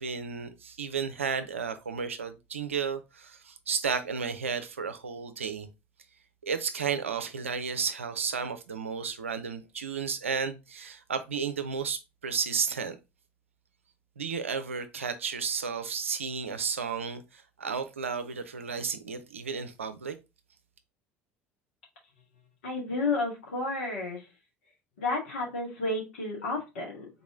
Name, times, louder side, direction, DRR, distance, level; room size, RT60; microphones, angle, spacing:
voice 1, 0.0-5.7 6.4-13.0 14.2-20.2, right 6 dB, 80° right, 0.5 m, -33 dB
voice 2, 22.6-24.3 25.0-27.1, left 3 dB, 70° left, 1.9 m, -31 dB
3.9 x 3.0 x 3.6 m
figure-of-eight pair, 65°, 7 cm